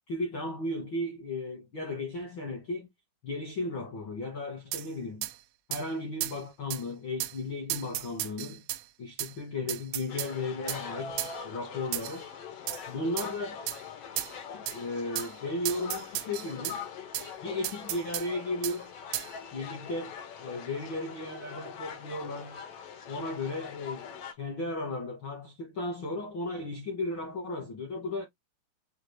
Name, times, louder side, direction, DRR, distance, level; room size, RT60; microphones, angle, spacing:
voice 1, 0.1-2.9 3.2-5.3 5.7-8.6 9.0-11.1 11.4-12.3 12.9-13.6 14.5-16.8 17.4-18.9 19.5-22.6 23.1-24.1 24.4-28.2, left 2 dB, 65° left, 1.2 m, -35 dB
sound 1, 4.7-4.9 5.2-5.3 5.7-5.8 6.2-6.4 6.7-6.8 7.2-7.4 7.7-8.8 9.2-9.3 9.7-10.3 10.7-10.8 11.2-11.3 11.9-12.2 12.7-12.8 13.2-13.3 13.7-13.8 14.2-14.3 14.7-14.8 15.2-15.3 15.7-16.8 17.1-17.3 17.6-18.3 18.6-18.8 19.1-19.3, right 15 dB, 85° right, 2.5 m, -34 dB
sound 2, 10.1-24.3, left 7 dB, 90° left, 1.3 m, -43 dB
6.3 x 2.3 x 3.2 m
omnidirectional pair, 4.4 m